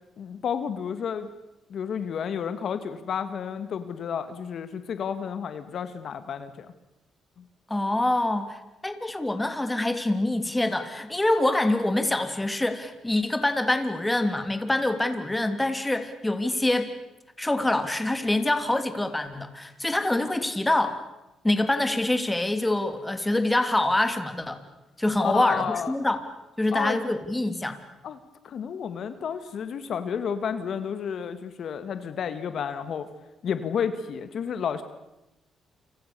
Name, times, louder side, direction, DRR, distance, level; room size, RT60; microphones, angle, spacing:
voice 1, 0.2-1.3 1.7-6.7 25.2-26.0 26.7-27.0 28.0-28.2 28.4-33.1 33.4-34.8, left 7 dB, 60° left, 10 dB, 1.9 m, -31 dB
voice 2, 7.7-8.6 8.8-16.9 17.4-21.0 21.4-24.6 25.0-26.2 26.6-27.8, left 1 dB, 10° left, 8 dB, 3.0 m, -25 dB
29.5 x 26.0 x 7.0 m, 0.94 s
cardioid pair, 90°, 0 cm